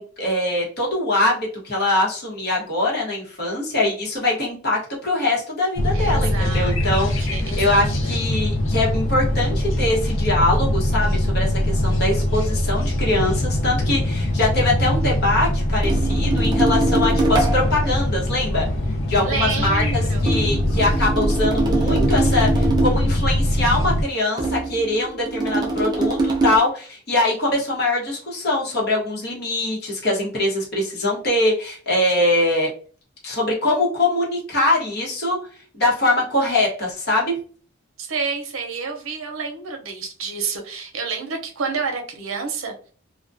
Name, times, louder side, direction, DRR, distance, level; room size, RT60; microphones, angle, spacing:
voice 1, 0.0-18.7 19.1-32.7 33.2-35.4 35.7-37.3, left 2 dB, 50° left, -3 dB, 1.0 m, -22 dB
sound 1, 5.8-24.0, left 1 dB, 70° left, 0.5 m, -22 dB
voice 2, 5.9-6.7 7.2-7.9 19.2-20.3 38.0-42.7, right 5 dB, 85° right, 3 dB, 0.6 m, -29 dB
sound 2, 15.8-17.9 20.3-23.2 24.4-26.6, right 2 dB, 20° right, 0.5 m, -23 dB
2.3 x 2.2 x 2.5 m, 0.42 s
head